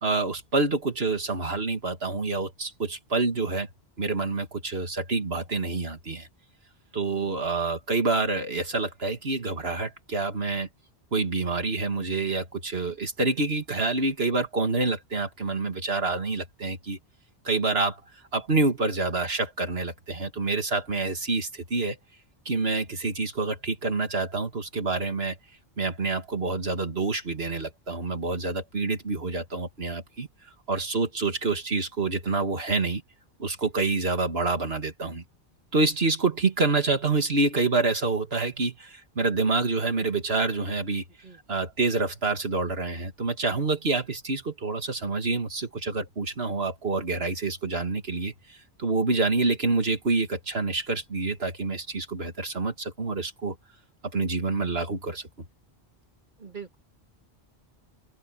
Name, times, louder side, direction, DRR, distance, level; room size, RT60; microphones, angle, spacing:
voice 1, 0.0-3.7 4.0-6.3 6.9-10.7 11.1-17.0 17.4-18.0 18.3-22.0 22.5-25.4 25.8-33.0 33.4-35.2 35.7-41.0 41.5-53.6 54.1-55.3, right 3 dB, 70° right, 2.4 m, -27 dB
voice 2, 56.4-56.8, right 6 dB, 50° right, 2.7 m, -43 dB
open air
omnidirectional pair, 1.1 m